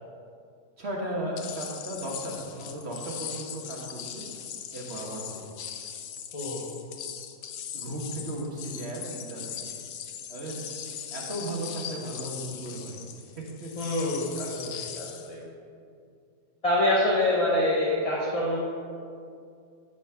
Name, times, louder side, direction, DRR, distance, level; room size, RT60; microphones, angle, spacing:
voice 1, 0.8-4.2 4.7-5.4 7.7-9.7 10.3-10.6 11.1-13.0 13.3-13.7, right 1 dB, 45° right, -2 dB, 1.5 m, -35 dB
sound 1, 1.4-15.3, left 9 dB, 85° left, 1.2 m, -40 dB
voice 2, 6.3-6.7 13.8-15.4 16.6-18.6, left 1 dB, 25° left, -5 dB, 0.9 m, -26 dB
12.0 x 4.2 x 5.7 m, 2.4 s
omnidirectional pair, 1.7 m